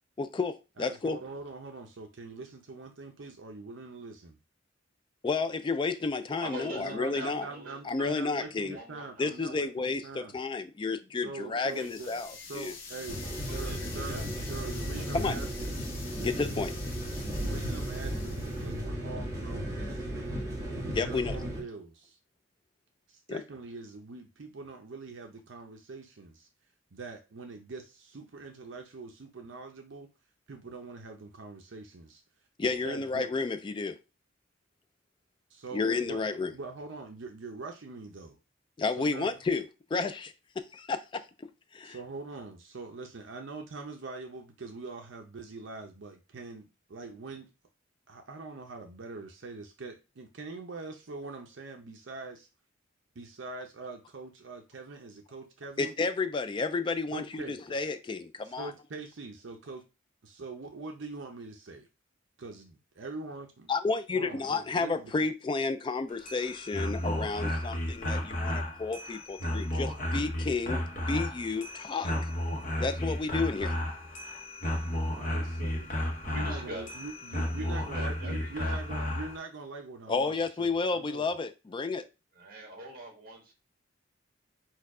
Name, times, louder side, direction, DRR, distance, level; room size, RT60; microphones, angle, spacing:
voice 1, 0.2-1.2 5.2-7.5 7.8-8.8 9.2-12.7 15.1-15.4 16.2-16.7 20.9-21.4 23.3-23.4 32.6-34.0 35.7-36.5 38.8-42.0 55.8-58.7 63.7-72.1 72.8-73.8 80.1-82.0, left 4 dB, 25° left, 0.3 m, -31 dB
voice 2, 0.8-4.4 6.8-10.4 11.2-12.1 12.5-15.7 17.3-20.4 20.7-22.2 23.1-26.5 26.9-30.1 30.5-32.2 32.7-33.3 35.5-38.4 39.0-39.3 41.8-47.5 48.1-52.5 53.1-55.9 57.1-57.8 58.4-59.8 60.2-61.9 62.4-63.7 64.1-65.1 75.1-75.9 76.2-81.2, right 3 dB, 70° right, 0.7 m, -43 dB
voice 3, 6.4-9.3 11.5-11.9 12.9-13.1 13.5-15.3 76.3-76.8 77.6-79.1 82.3-83.5, right 1 dB, 50° right, 1.8 m, -44 dB
sound 1, 11.6-18.8, left 5 dB, 90° left, 1.3 m, -46 dB
sound 2, 13.1-21.6, right 1 dB, 15° right, 1.3 m, -35 dB
sound 3, 66.1-79.4, left 1 dB, 40° left, 0.9 m, -33 dB
4.5 x 2.3 x 4.7 m
head